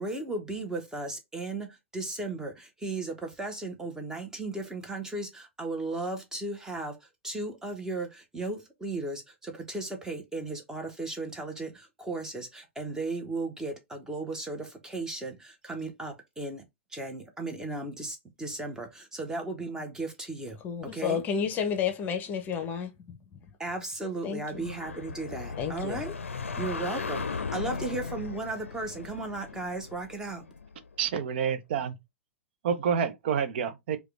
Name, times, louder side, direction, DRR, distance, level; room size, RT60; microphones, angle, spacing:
voice 1, 0.0-16.6 16.9-20.6 20.8-21.2 23.6-26.2 26.6-30.4, right 2 dB, 10° right, 1.0 m, -36 dB
voice 2, 20.6-23.2 24.2-24.7 25.6-26.0, left 7 dB, 25° left, 0.8 m, -31 dB
sound 1, 24.4-31.0, left 5 dB, 75° left, 0.5 m, -37 dB
voice 3, 31.0-32.0 32.6-34.0, right 7 dB, 50° right, 0.7 m, -28 dB
4.8 x 2.3 x 3.3 m
figure-of-eight pair, 100°, 7 cm